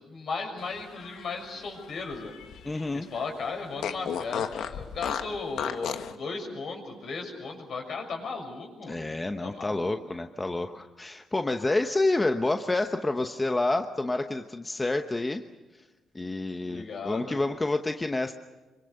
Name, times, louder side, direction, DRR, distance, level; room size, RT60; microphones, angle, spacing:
voice 1, 0.1-2.3 2.9-9.0 9.4-10.2 16.6-17.3, left 4 dB, 60° left, 3 dB, 6.3 m, -36 dB
Fart, 0.8-2.9 3.2-3.3 3.8-6.1, left 8 dB, 85° left, 1.2 m, -34 dB
voice 2, 2.6-3.1 8.9-15.4 16.1-18.3, left 2 dB, 15° left, 6 dB, 1.0 m, -28 dB
26.0 x 24.5 x 6.6 m, 1.2 s
cardioid pair, 120°, 0 cm